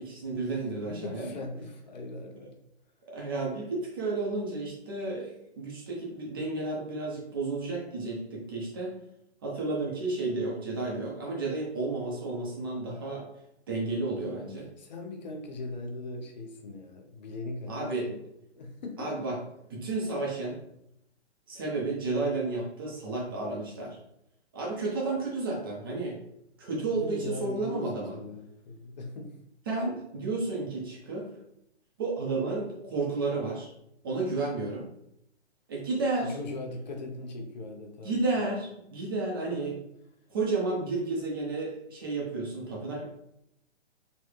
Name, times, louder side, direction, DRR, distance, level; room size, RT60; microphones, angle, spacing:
voice 1, 0.0-1.3 3.1-9.0 9.4-13.2 13.7-14.7 17.7-18.1 19.0-19.4 19.7-20.6 21.5-24.0 24.5-26.2 26.6-28.2 29.7-31.3 32.0-33.7 34.0-34.8 35.7-36.4 38.0-39.7 40.3-43.0, right 3 dB, 20° right, -3 dB, 0.4 m, -32 dB
voice 2, 0.9-2.5 14.8-18.2 18.5-19.3 26.9-29.3 36.2-38.5 39.5-39.8, left 2 dB, 40° left, 3 dB, 0.5 m, -40 dB
3.9 x 2.0 x 3.1 m, 0.79 s
hypercardioid pair, 135°, 35 cm